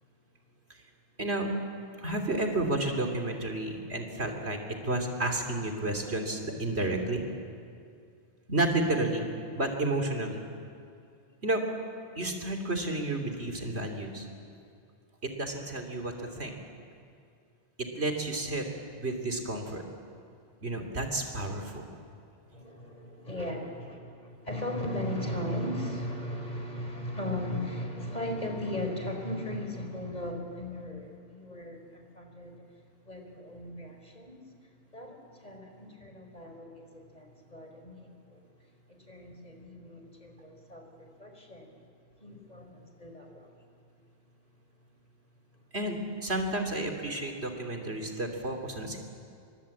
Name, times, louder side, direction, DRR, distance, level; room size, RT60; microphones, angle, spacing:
voice 1, 2.0-4.6 4.8-7.2 8.5-9.3 9.6-10.4 11.4-11.6 12.2-14.3 15.2-16.6 17.8-18.7 19.0-19.8 20.6-21.9 45.7-49.0, right 2 dB, 75° right, 4 dB, 3.2 m, -31 dB
voice 2, 22.5-32.6 33.0-34.4 34.9-38.5 38.9-41.7 42.2-43.6, left 1 dB, 40° left, 3 dB, 4.4 m, -37 dB
29.5 x 24.0 x 8.5 m, 2.4 s
omnidirectional pair, 1.1 m